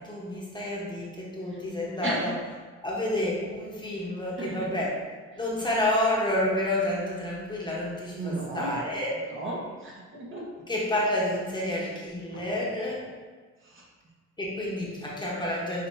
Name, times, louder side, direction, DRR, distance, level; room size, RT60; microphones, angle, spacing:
voice 1, 0.0-2.3 2.8-4.9 5.4-9.3 10.7-13.0 14.4-15.9, left 1 dB, 15° left, -5 dB, 1.0 m, -29 dB
voice 2, 4.4-4.7 8.1-8.8 9.3-10.5 12.3-12.4 13.7-13.8, right 2 dB, 40° right, -3 dB, 1.1 m, -34 dB
6.2 x 2.8 x 2.7 m, 1.4 s
cardioid pair, 90°, 30 cm